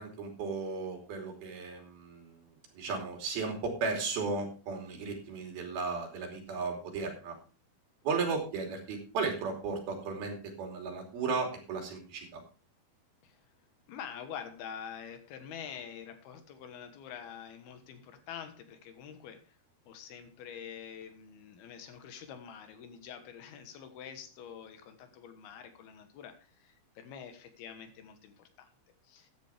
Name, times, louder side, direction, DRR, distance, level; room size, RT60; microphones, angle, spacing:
voice 1, 0.0-7.3 8.0-12.4, right 4 dB, 70° right, 2 dB, 4.7 m, -35 dB
voice 2, 13.9-19.6 19.9-28.7 29.0-29.3, left 8 dB, 75° left, 8 dB, 3.3 m, -46 dB
14.0 x 10.5 x 3.5 m, 0.35 s
omnidirectional pair, 4.5 m